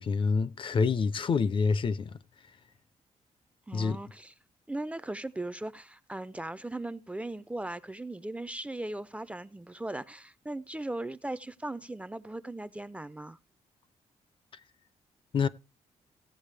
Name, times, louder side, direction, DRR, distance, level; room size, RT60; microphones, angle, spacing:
voice 1, 0.0-2.2 3.7-4.0 15.3-15.5, left 5 dB, 45° left, 0.5 m, -27 dB
voice 2, 3.7-4.3 4.7-13.4, right 2 dB, 10° right, 0.4 m, -38 dB
16.5 x 8.0 x 3.3 m
cardioid pair, 130°, 12 cm